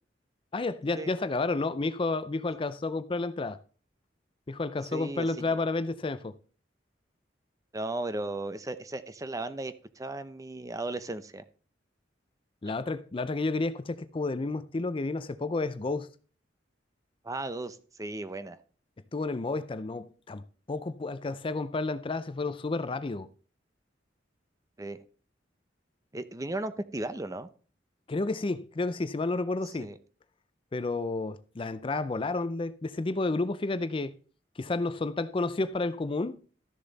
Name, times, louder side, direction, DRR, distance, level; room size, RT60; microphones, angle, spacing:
voice 1, 0.5-3.6 4.5-6.3 12.6-16.1 19.1-20.4 20.7-23.3 28.1-29.9 30.7-34.1 34.6-36.4, left 3 dB, 30° left, 0.4 m, -31 dB
voice 2, 4.9-5.4 7.7-11.4 17.2-18.6 24.8-25.0 26.1-27.5 29.8-30.0, right 2 dB, 20° right, 0.6 m, -36 dB
13.0 x 6.8 x 4.0 m
head